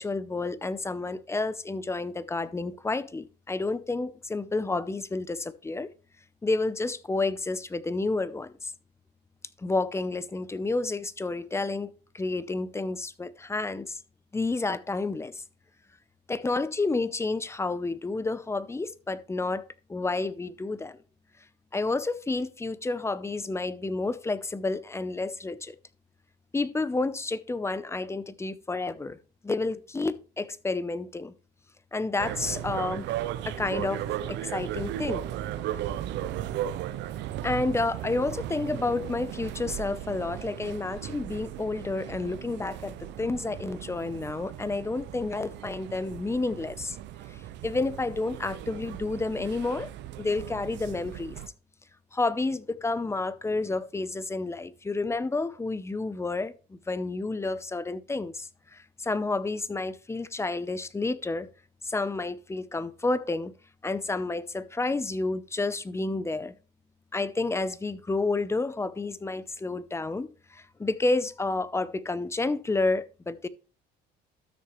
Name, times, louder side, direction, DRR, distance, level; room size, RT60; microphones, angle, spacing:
voice 1, 0.0-5.9 6.4-8.7 9.6-14.0 14.3-15.4 16.3-21.0 21.7-25.8 26.5-29.2 29.4-31.3 31.9-33.1 33.4-35.2 37.4-47.0 47.3-49.9 50.2-51.4 52.1-61.5 61.8-63.5 63.8-66.5 67.1-73.5, left 3 dB, 15° left, 0.7 m, -30 dB
sound 1, 32.2-51.5, right 12 dB, 70° right, 0.7 m, -36 dB
13.0 x 6.5 x 3.2 m
supercardioid pair, 95°, 19 cm